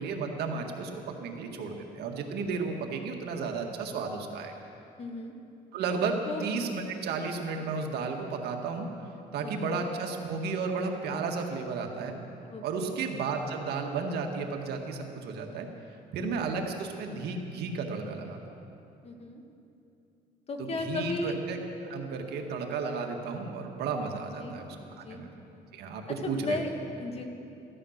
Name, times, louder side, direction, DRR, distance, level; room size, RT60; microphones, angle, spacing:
voice 1, 0.0-4.5 5.7-8.9 9.3-12.2 12.6-15.7 16.1-18.4 20.6-21.6 21.9-25.3 25.7-26.6, right 4 dB, 75° right, 3 dB, 1.8 m, -33 dB
voice 2, 5.0-5.3 6.2-6.5 9.4-9.8 12.5-13.0 16.2-16.5 19.0-19.4 20.5-21.4 24.4-24.6 25.0-25.2 26.1-27.2, left 2 dB, 35° left, 4 dB, 1.8 m, -35 dB
16.0 x 13.0 x 6.6 m, 2.7 s
cardioid pair, 110°, 17 cm